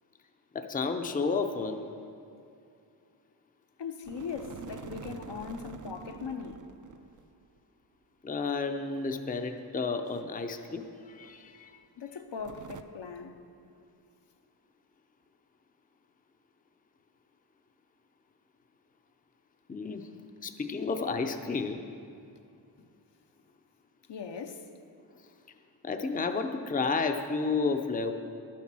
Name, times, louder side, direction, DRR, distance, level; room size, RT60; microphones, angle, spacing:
voice 1, 0.5-1.9 8.2-11.7 19.7-20.0 20.4-21.9 25.8-28.1, left 4 dB, 20° left, 0.5 m, -31 dB
voice 2, 3.8-6.7 12.0-13.4 22.8-22.9 24.1-24.7, left 6 dB, 75° left, 0.8 m, -39 dB
sound 1, 4.0-7.2 7.6-7.7 9.0-10.9 11.2-11.3 12.4-12.8, right 7 dB, 45° right, 0.5 m, -47 dB
11.5 x 7.3 x 6.0 m
wide cardioid pair, 110°, 43 cm